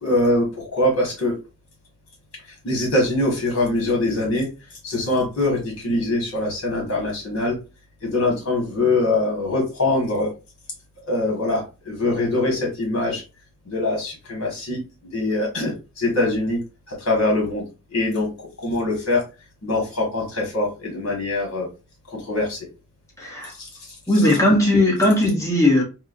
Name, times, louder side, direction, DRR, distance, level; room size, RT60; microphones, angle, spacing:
voice 1, 0.0-1.3 2.6-4.5 4.8-7.5 8.0-10.3 11.1-13.2 13.7-14.8 15.1-16.6 16.9-17.6 17.9-18.3 18.6-19.2 19.6-21.7 22.1-22.6 23.6-23.7, left 2 dB, 65° left, 1.3 m, -23 dB
voice 2, 23.2-23.5 24.1-25.8, left 1 dB, 15° left, 1.0 m, -18 dB
4.2 x 2.1 x 2.5 m
head